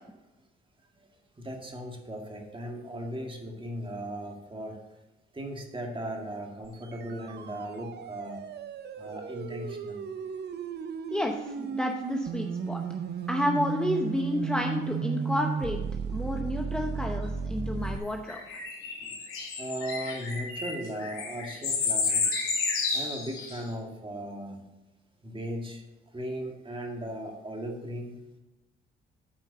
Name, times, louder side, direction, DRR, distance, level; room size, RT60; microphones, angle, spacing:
voice 1, 1.4-4.8 5.3-8.4 9.0-10.0 12.4-12.5 17.2-17.3 19.0-19.2 19.6-22.2 22.9-24.6 25.2-25.8 26.1-28.2, equal, 25° right, 2 dB, 2.0 m, -37 dB
sound 1, 6.6-18.0, right 6 dB, 55° right, 0.7 m, -35 dB
voice 2, 11.1-12.8 13.3-15.8 16.1-18.4, left 1 dB, 5° left, 2 dB, 0.8 m, -30 dB
birds singing in the evening forest, 18.3-23.6, left 4 dB, 85° left, 2.8 m, -31 dB
8.6 x 4.5 x 6.7 m, 1.0 s
supercardioid pair, 70°, 21 cm